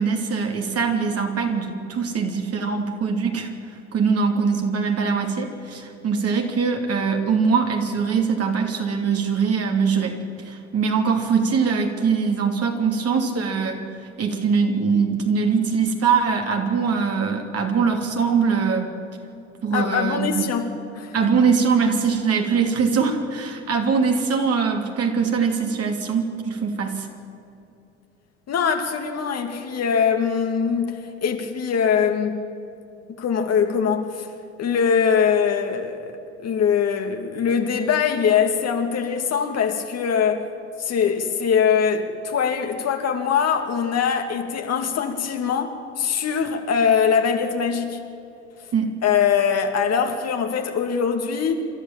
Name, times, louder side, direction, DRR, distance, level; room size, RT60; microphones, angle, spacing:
voice 1, 0.0-3.5 3.9-10.2 10.4-13.9 14.2-18.9 19.6-20.4 21.1-27.1 48.7-48.9, right 5 dB, 45° right, 3 dB, 3.1 m, -22 dB
voice 2, 19.7-20.7 20.9-21.3 28.5-32.4 33.2-34.3 34.6-36.1 36.4-40.5 40.8-48.0 49.0-51.6, left 7 dB, 50° left, 4 dB, 2.5 m, -22 dB
28.0 x 13.0 x 7.6 m, 2.7 s
hypercardioid pair, 60°, 33 cm